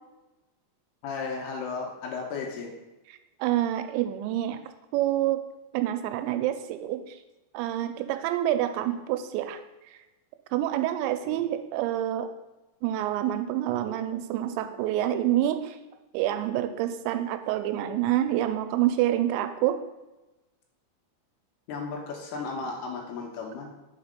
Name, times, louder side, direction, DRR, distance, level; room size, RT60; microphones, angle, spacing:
voice 1, 1.0-2.7 11.3-11.4 21.7-23.7, left 4 dB, 75° left, 0 dB, 2.7 m, -34 dB
voice 2, 3.4-4.6 4.9-5.4 5.7-7.2 7.5-9.6 9.9-10.0 10.5-12.3 12.8-15.8 16.1-19.8, right 12 dB, 85° right, 8 dB, 2.8 m, -27 dB
5.2 x 5.1 x 5.1 m, 1.0 s
omnidirectional pair, 5.1 m